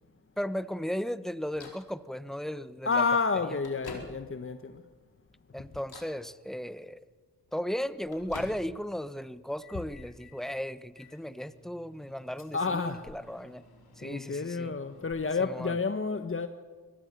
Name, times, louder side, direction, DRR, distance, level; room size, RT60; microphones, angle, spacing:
voice 1, 0.4-3.0 5.5-7.0 7.5-13.6 14.0-14.7 15.4-15.8, equal, ahead, 1.0 m, -36 dB
Microwave oven, 1.6-1.9 2.8-2.9 3.4-4.5 5.0-5.4 5.8-6.2 7.4-8.9 9.3-10.4 10.9-15.2, left 3 dB, 60° left, 4.6 m, -50 dB
voice 2, 2.8-4.8 12.5-13.1 14.0-16.5, left 4 dB, 30° left, 1.3 m, -30 dB
23.5 x 18.5 x 6.8 m
supercardioid pair, 40°, 43 cm